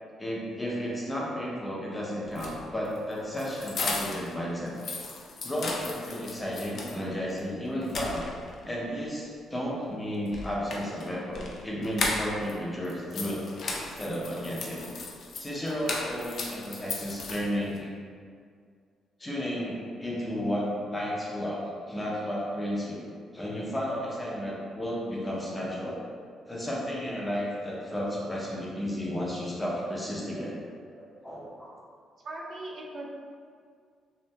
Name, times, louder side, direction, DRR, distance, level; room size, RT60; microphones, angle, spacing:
voice 1, 0.2-4.7 5.4-8.2 8.6-13.5 14.0-14.9 15.4-17.9 19.2-21.6 21.9-23.1 23.3-26.0 26.5-30.6 31.0-31.7, equal, 15° left, -5 dB, 0.6 m, -33 dB
sound 1, 2.3-4.3 4.7-7.0 7.4-7.5 7.8-8.6 10.3-12.5 12.8-17.8, left 3 dB, 60° left, 0.4 m, -36 dB
voice 2, 32.2-33.1, right 2 dB, 55° right, -3 dB, 0.4 m, -39 dB
2.8 x 2.5 x 2.2 m, 2.1 s
cardioid pair, 90°, 0 cm